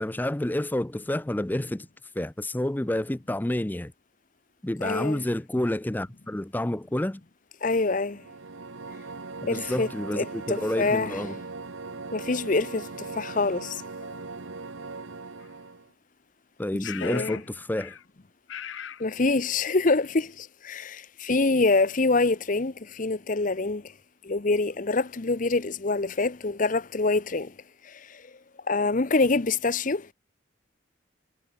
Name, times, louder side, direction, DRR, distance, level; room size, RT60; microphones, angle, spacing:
voice 1, 0.0-1.9 2.1-3.9 4.6-7.2 9.4-11.3 16.6-18.0, left 1 dB, 10° left, 0.5 m, -29 dB
voice 2, 4.8-5.2 7.6-8.2 9.5-9.9 10.1-11.1 12.1-13.8 16.8-17.4 19.0-23.9 24.2-27.5 27.8-28.2 28.7-30.1, left 3 dB, 40° left, 0.8 m, -26 dB
sound 1, 8.1-15.9, right 3 dB, 75° right, 1.2 m, -39 dB
sound 2, 15.4-15.5 16.8-17.5 17.7-18.0 18.5-19.0, left 9 dB, 70° left, 0.8 m, -39 dB
head